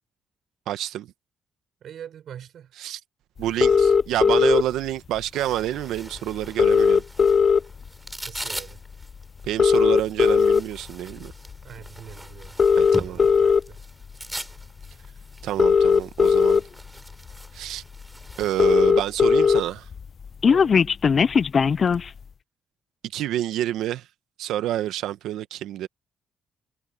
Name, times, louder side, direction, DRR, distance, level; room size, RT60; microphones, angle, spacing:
voice 1, 0.7-1.1 2.8-3.0 3.4-7.0 9.4-11.3 12.8-13.2 15.4-16.6 17.5-17.8 18.4-19.9 23.0-24.1 24.4-25.9, right 13 dB, 85° right, 1.2 m, -28 dB
voice 2, 1.8-2.7 3.4-3.5 8.3-8.8 11.6-12.6 13.1-13.8 20.4-20.9, right 9 dB, 65° right, 7.0 m, -43 dB
sound 1, 3.6-4.6 5.8-5.9 6.1-6.2 6.4-7.9 8.4-8.6 9.4-10.6 11.3-11.5 12.4-13.6 14.8-14.9 15.4-16.6 17.3-17.4 17.7-17.8 18.0-18.1 18.3-19.6 19.9-22.1, left 6 dB, 45° left, 0.3 m, -18 dB
sound 2, 5.3-18.8, right 1 dB, 10° right, 6.1 m, -42 dB
cardioid pair, 90°, 0 cm